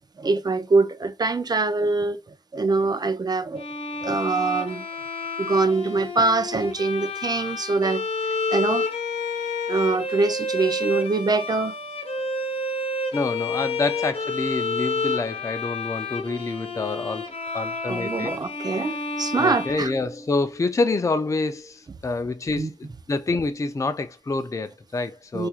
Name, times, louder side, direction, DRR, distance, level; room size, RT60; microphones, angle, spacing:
voice 1, 0.2-2.2 2.5-3.6 4.0-4.8 5.4-8.0 8.5-8.8 9.7-11.7 17.9-19.9 22.6-22.7 25.3-25.5, right 3 dB, 35° right, 0.5 m, -23 dB
Bowed string instrument, 3.6-20.6, left 3 dB, 50° left, 0.9 m, -30 dB
voice 2, 13.1-18.3 19.4-25.5, left 3 dB, 25° left, 0.4 m, -27 dB
4.2 x 2.5 x 2.4 m
wide cardioid pair, 110°, 12 cm